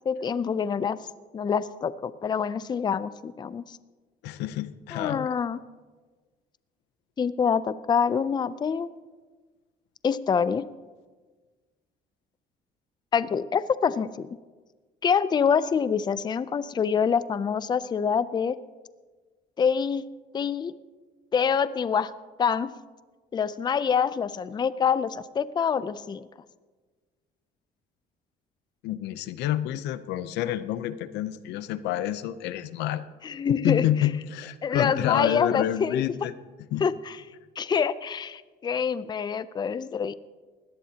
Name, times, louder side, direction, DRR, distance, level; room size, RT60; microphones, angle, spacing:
voice 1, 0.1-1.0 1.3-3.8 4.9-5.6 7.2-8.9 10.0-10.6 13.1-14.3 15.0-18.6 19.6-20.0 20.3-20.7 21.3-22.1 22.4-22.7 23.3-26.3 33.2-34.1 34.6-36.0 36.8-37.2 37.6-40.1, left 6 dB, 25° left, 16 dB, 0.5 m, -26 dB
voice 2, 4.2-5.3 28.8-33.1 33.6-36.3 36.7-36.8, left 12 dB, 90° left, 14 dB, 0.7 m, -28 dB
21.0 x 17.0 x 2.9 m, 1.4 s
cardioid pair, 110°, 17 cm